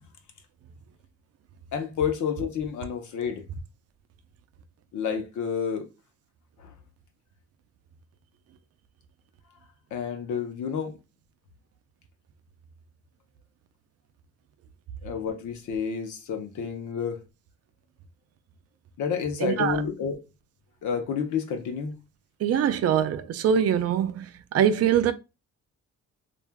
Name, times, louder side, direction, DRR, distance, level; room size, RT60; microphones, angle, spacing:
voice 1, 1.7-3.4 4.9-5.9 6.6-6.7 9.9-10.9 15.0-17.2 19.0-20.2 20.8-21.9, left 6 dB, 75° left, 0.8 m, -30 dB
voice 2, 19.4-19.8 22.4-25.1, right 8 dB, 55° right, 0.5 m, -23 dB
3.3 x 2.5 x 2.2 m
cardioid pair, 90°, 30 cm